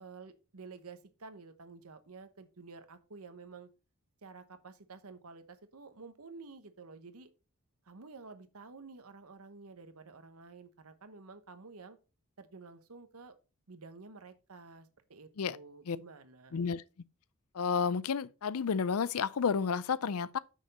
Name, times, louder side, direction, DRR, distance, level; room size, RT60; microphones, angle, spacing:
voice 1, 0.0-3.7 4.2-7.3 7.8-12.0 12.4-13.3 13.7-16.6, right 4 dB, 85° right, 1.1 m, -51 dB
voice 2, 16.5-16.8 17.5-20.4, left 6 dB, 90° left, 0.5 m, -31 dB
6.7 x 6.1 x 4.2 m
head